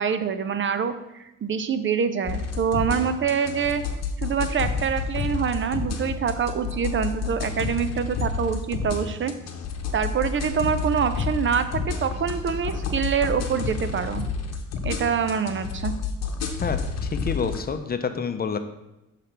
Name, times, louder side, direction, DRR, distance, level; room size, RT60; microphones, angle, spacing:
voice 1, 0.0-3.9 4.2-9.3 9.9-14.2 14.8-15.9, right 7 dB, 40° right, 11 dB, 0.5 m, -25 dB
sound 1, 2.3-17.6, left 5 dB, 60° left, 0.9 m, -29 dB
voice 2, 16.6-18.6, left 5 dB, 30° left, 8 dB, 0.6 m, -28 dB
6.7 x 3.3 x 5.7 m, 0.91 s
cardioid pair, 90°, 30 cm